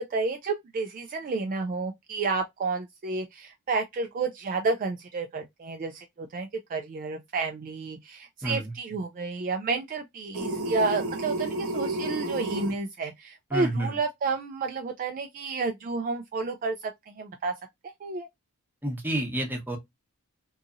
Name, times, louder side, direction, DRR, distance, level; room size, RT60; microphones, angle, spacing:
voice 1, 0.0-17.5 18.0-18.3, right 4 dB, 40° right, 0.3 m, -31 dB
voice 2, 8.4-8.7 13.5-14.0 18.8-19.8, right 1 dB, 10° right, 0.8 m, -29 dB
sound 1, 10.3-12.7, right 1 dB, 70° right, 0.9 m, -31 dB
2.8 x 2.6 x 2.3 m
head